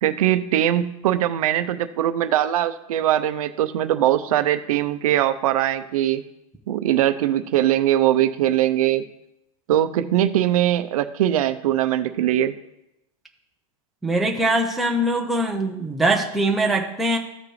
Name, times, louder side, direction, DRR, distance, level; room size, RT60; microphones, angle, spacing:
voice 1, 0.0-6.2 6.7-9.1 9.7-12.5, right 12 dB, 85° right, 9 dB, 0.7 m, -21 dB
voice 2, 14.0-17.2, right 1 dB, ahead, 0 dB, 0.6 m, -22 dB
14.0 x 4.8 x 3.2 m, 0.85 s
supercardioid pair, 170°, 18 cm